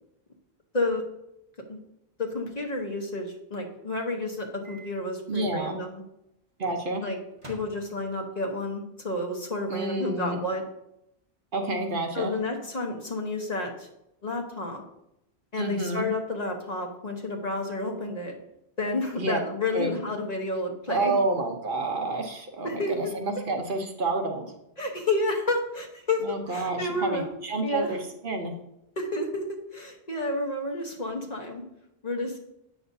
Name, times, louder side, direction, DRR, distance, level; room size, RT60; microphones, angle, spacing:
voice 1, 2.2-6.0 7.0-7.2 7.5-10.6 12.1-13.9 14.2-14.8 15.5-18.4 18.8-21.1 22.6-23.1 24.8-27.9 29.0-31.6 32.0-32.5, left 2 dB, 40° left, 1 dB, 1.0 m, -30 dB
Microwave oven, 4.6-4.9 5.3-5.4 7.3-8.4, right 1 dB, 30° right, 1.3 m, -48 dB
voice 2, 5.3-5.8 6.6-7.0 9.7-10.4 11.5-12.3 15.6-16.0 19.2-19.4 19.7-20.0 20.9-24.5 26.2-28.5, right 2 dB, 55° right, 3 dB, 0.9 m, -29 dB
8.6 x 6.2 x 2.7 m, 0.82 s
omnidirectional pair, 1.1 m